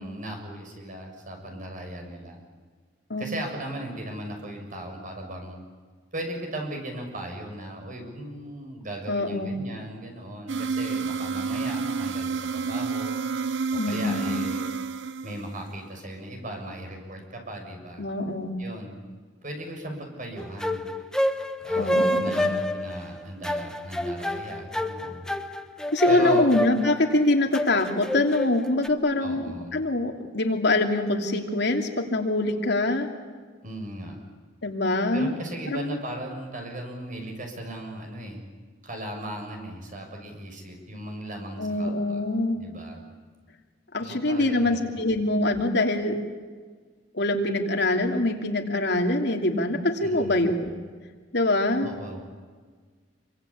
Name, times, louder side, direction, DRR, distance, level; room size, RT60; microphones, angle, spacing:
voice 1, 0.0-2.4 3.2-5.6 6.1-13.1 13.7-14.6 15.2-18.0 18.6-18.9 19.4-21.1 21.6-25.3 26.1-26.5 29.2-29.8 33.6-34.2 35.1-38.4 38.8-42.2 42.5-43.0 44.0-44.8 50.0-50.6 51.8-52.2, right 1 dB, 45° right, 3 dB, 6.8 m, -37 dB
voice 2, 9.1-9.6 13.7-14.3 18.0-18.6 21.8-22.5 25.9-33.1 34.6-35.3 35.7-36.0 41.6-42.6 43.9-46.2 47.1-50.7 51.3-51.9, left 2 dB, 65° left, 3 dB, 3.0 m, -24 dB
sound 1, 10.5-15.8, right 5 dB, 85° right, 0.8 m, -30 dB
sound 2, 20.4-28.9, left 1 dB, 5° left, 1.2 m, -27 dB
27.5 x 24.5 x 8.7 m, 1.5 s
head